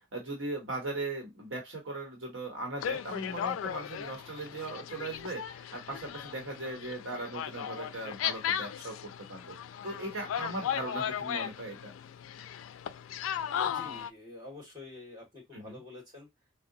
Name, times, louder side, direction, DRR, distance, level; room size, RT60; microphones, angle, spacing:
voice 1, 0.0-9.0 9.3-9.5 9.8-11.9 15.5-15.8, right 2 dB, 70° right, 1 dB, 1.0 m, -38 dB
sound 1, 2.8-14.1, left 9 dB, 90° left, 0.3 m, -36 dB
voice 2, 13.5-16.3, left 2 dB, 20° right, -2 dB, 1.7 m, -48 dB
3.6 x 2.1 x 2.6 m, 0.18 s
head